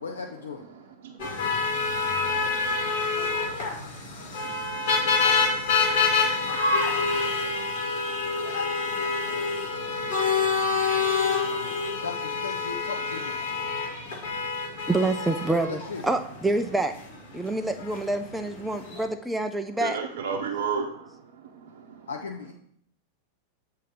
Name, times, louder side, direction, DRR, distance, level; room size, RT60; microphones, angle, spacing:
voice 1, 0.0-0.6 9.2-10.1 10.7-13.4 15.7-16.0 22.1-22.5, left 5 dB, 70° left, 2 dB, 0.5 m, -39 dB
voice 2, 0.7-2.9 19.8-22.1, right 6 dB, 55° right, 0 dB, 0.7 m, -35 dB
sound 1, 1.2-19.0, left 4 dB, 50° left, 1.3 m, -27 dB
voice 3, 14.9-16.9 17.3-20.0, right 2 dB, 5° right, 5 dB, 0.4 m, -27 dB
7.4 x 2.7 x 5.1 m, 0.65 s
figure-of-eight pair, 90°, 0 cm